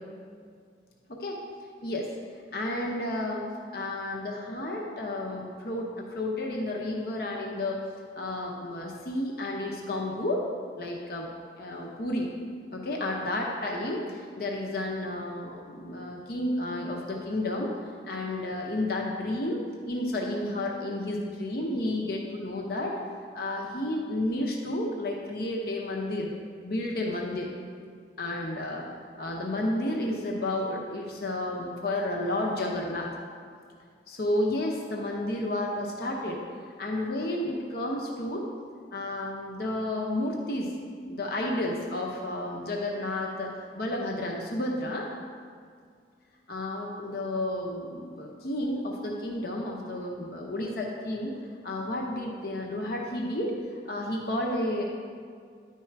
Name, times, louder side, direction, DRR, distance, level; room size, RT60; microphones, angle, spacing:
voice 1, 1.1-1.4 1.8-2.1 2.5-7.8 8.1-10.5 10.8-11.3 11.6-12.3 12.7-17.7 18.1-23.0 23.3-26.3 26.6-27.5 28.2-28.9 29.2-33.1 34.1-36.4 36.8-38.5 38.9-40.7 41.0-45.1 46.5-51.3 51.6-53.5 53.9-54.8, left 1 dB, 55° left, -1 dB, 0.8 m, -31 dB
10.5 x 4.5 x 4.6 m, 2.1 s
head